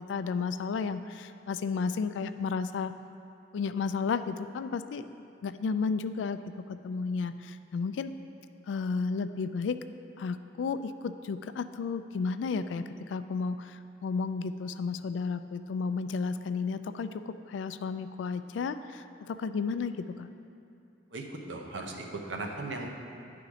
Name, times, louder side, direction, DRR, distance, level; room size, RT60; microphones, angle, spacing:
voice 1, 0.0-2.9 3.5-5.0 5.4-6.4 6.7-8.1 8.7-9.8 10.2-20.3, left 5 dB, 75° left, 11 dB, 0.3 m, -33 dB
voice 2, 21.1-22.9, right 2 dB, 80° right, 2 dB, 0.8 m, -37 dB
10.5 x 3.9 x 4.9 m, 2.6 s
head